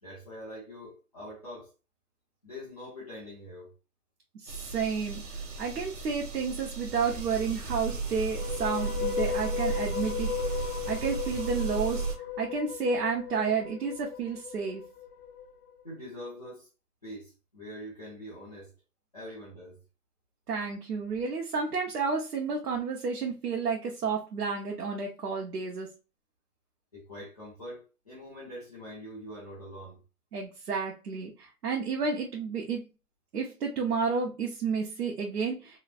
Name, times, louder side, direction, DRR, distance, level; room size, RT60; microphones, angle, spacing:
voice 1, 0.0-1.7 2.4-3.7 15.8-16.7 17.0-18.7 19.1-19.8 26.9-30.0, equal, 25° left, 0.7 m, -44 dB
voice 2, 4.4-5.2 5.6-10.3 10.9-12.0 12.4-14.8 20.5-25.9 30.3-32.8 33.3-35.8, right 5 dB, 80° right, 0.9 m, -31 dB
sound 1, 4.5-12.1, right 4 dB, 55° right, 0.7 m, -35 dB
sound 2, 8.2-15.5, left 9 dB, 70° left, 0.8 m, -36 dB
3.1 x 2.1 x 2.3 m
hypercardioid pair, 175°, 46 cm